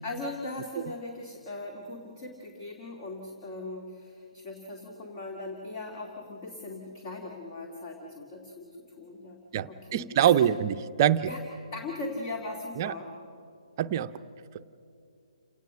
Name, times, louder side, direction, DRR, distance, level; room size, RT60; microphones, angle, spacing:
voice 1, 0.0-8.7 9.0-9.4 9.7-10.4 11.2-11.4 11.7-13.1, left 2 dB, 35° left, 1 dB, 2.6 m, -39 dB
voice 2, 9.5-11.3 12.8-12.9 13.8-14.1, right 10 dB, 35° right, 10 dB, 0.6 m, -24 dB
29.0 x 18.5 x 6.5 m, 2.6 s
figure-of-eight pair, 135°, 3 cm